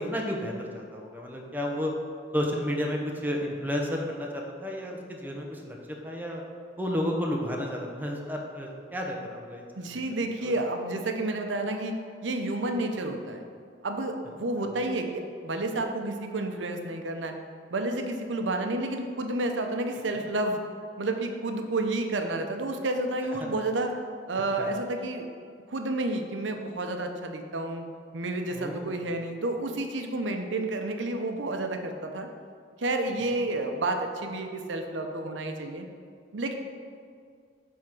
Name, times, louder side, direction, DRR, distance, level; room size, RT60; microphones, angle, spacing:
voice 1, 0.0-1.9 2.3-5.8 6.0-6.4 6.8-10.0 10.3-10.5 24.6-24.7 28.5-29.1, equal, 10° right, 0 dB, 0.9 m, -32 dB
voice 2, 9.8-11.9 12.2-13.5 13.8-17.3 17.7-20.6 21.0-23.9 24.3-25.3 25.7-27.9 28.1-32.3 32.8-35.9 36.3-36.5, right 2 dB, 80° right, 5 dB, 0.7 m, -30 dB
7.6 x 3.6 x 6.0 m, 2.2 s
head